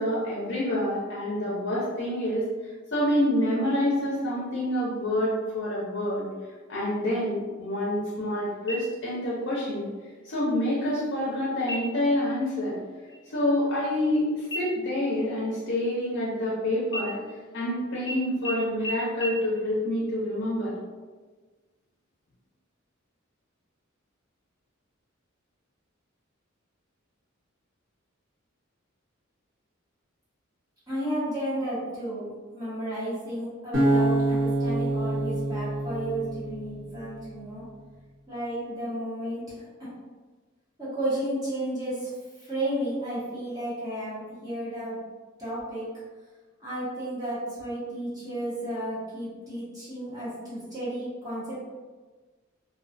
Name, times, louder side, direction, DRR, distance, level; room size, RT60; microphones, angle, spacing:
voice 1, 0.0-6.3 6.7-9.9 10.2-12.8 13.3-17.2 17.5-20.7, left 1 dB, 55° left, -6 dB, 0.6 m, -27 dB
sound 1, 8.7-9.3 9.7-9.8 10.4-10.9 11.6-12.1 12.5-12.8 13.1-14.2 14.5-16.5 16.9-17.7 18.1-18.2 18.4-18.5 18.8-18.9 19.2-19.3, right 1 dB, 20° left, 0.3 m, -37 dB
voice 2, 30.9-37.6 38.3-39.7 40.8-42.1 42.4-45.0 45.4-45.9 46.6-51.6, right 1 dB, 20° right, -11 dB, 1.0 m, -33 dB
Acoustic guitar, 33.7-37.0, right 1 dB, 70° right, 0.9 m, -26 dB
2.4 x 2.3 x 2.5 m, 1.4 s
head